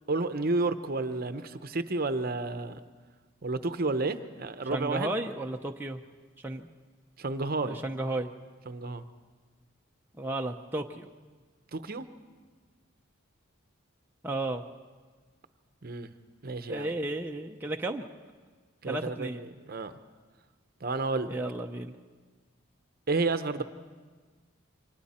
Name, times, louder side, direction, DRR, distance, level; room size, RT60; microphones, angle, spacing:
voice 1, 0.1-2.8 3.4-5.1 7.2-7.8 8.7-9.0 11.7-12.1 15.8-16.1 16.4-16.9 18.8-19.9 20.8-21.4 23.1-23.6, right 3 dB, 45° right, 10 dB, 0.8 m, -31 dB
voice 2, 4.7-6.0 6.4-6.7 7.6-8.3 10.2-11.1 14.2-14.6 16.7-18.1 18.9-19.4 21.3-22.0 23.6-23.7, right 2 dB, 10° right, 2 dB, 0.6 m, -33 dB
28.5 x 24.0 x 4.3 m, 1.4 s
head